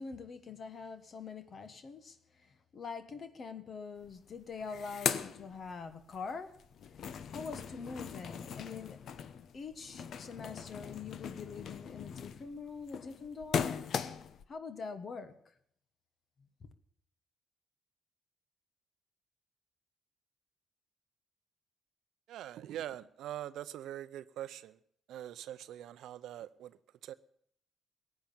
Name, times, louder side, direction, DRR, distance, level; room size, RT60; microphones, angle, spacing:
voice 1, 0.0-6.5 7.3-9.0 9.5-13.9 14.5-15.3 16.6-16.7, left 5 dB, 45° left, 1.4 m, -44 dB
sound 1, 4.0-4.1 4.4-6.2 6.5-14.4, left 7 dB, 65° left, 0.9 m, -39 dB
voice 2, 22.3-24.8 25.1-27.1, right 12 dB, 80° right, 0.5 m, -43 dB
15.5 x 8.9 x 8.7 m
cardioid pair, 90°, 0 cm